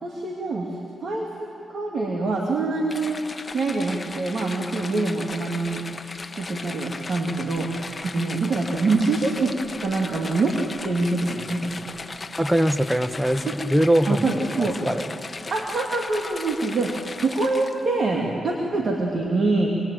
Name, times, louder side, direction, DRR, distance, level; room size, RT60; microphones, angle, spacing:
voice 1, 0.0-3.2 3.5-5.8 6.3-9.5 9.8-10.5 10.8-11.9 13.5-13.6 14.1-14.8 15.5-19.7, right 3 dB, 60° right, 0 dB, 2.7 m, -25 dB
sound 1, 2.9-18.0, left 3 dB, 35° left, 1.1 m, -37 dB
voice 2, 12.4-14.2 14.6-15.1, equal, 5° right, 11 dB, 1.2 m, -22 dB
27.0 x 20.5 x 9.2 m, 2.8 s
cardioid pair, 70°, 0 cm